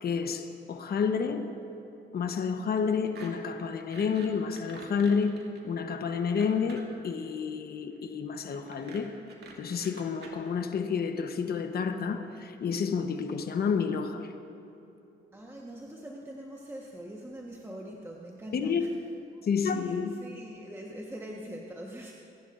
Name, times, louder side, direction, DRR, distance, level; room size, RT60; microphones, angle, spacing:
voice 1, 0.0-1.5 2.1-5.4 5.6-9.1 9.6-14.3 18.5-18.8 19.4-20.1, left 6 dB, 50° left, 7 dB, 1.0 m, -30 dB
sound 1, 3.1-3.3 3.6-7.0 8.5-10.3, right 4 dB, 55° right, 2.2 m, -47 dB
voice 2, 15.3-18.9 19.3-22.1, right 1 dB, 10° right, -2 dB, 1.3 m, -43 dB
25.5 x 11.0 x 2.6 m, 3.0 s
cardioid pair, 90°, 20 cm